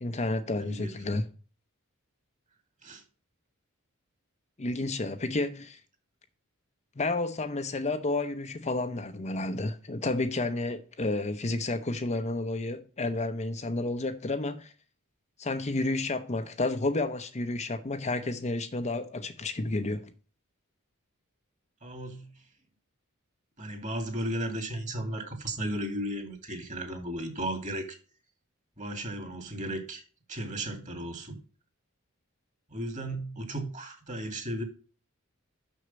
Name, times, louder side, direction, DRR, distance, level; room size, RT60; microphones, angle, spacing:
voice 1, 0.0-1.3 4.6-5.8 7.0-14.7 15.4-20.1, left 2 dB, 30° left, 0.7 m, -31 dB
voice 2, 21.8-22.4 23.6-28.0 28.8-30.0 30.3-31.4 32.7-34.6, right 1 dB, 35° right, 2.4 m, -35 dB
6.4 x 6.4 x 6.9 m
head